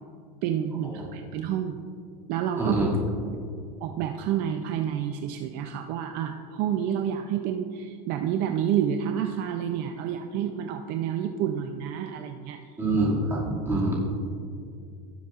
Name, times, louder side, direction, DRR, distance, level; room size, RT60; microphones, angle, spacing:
voice 1, 0.4-1.8 2.3-2.8 3.8-12.6, right 9 dB, 50° right, 5 dB, 0.5 m, -29 dB
voice 2, 2.6-3.0 12.8-14.0, right 2 dB, 10° right, -5 dB, 2.2 m, -25 dB
17.5 x 7.4 x 2.4 m, 2.4 s
cardioid pair, 160°, 20 cm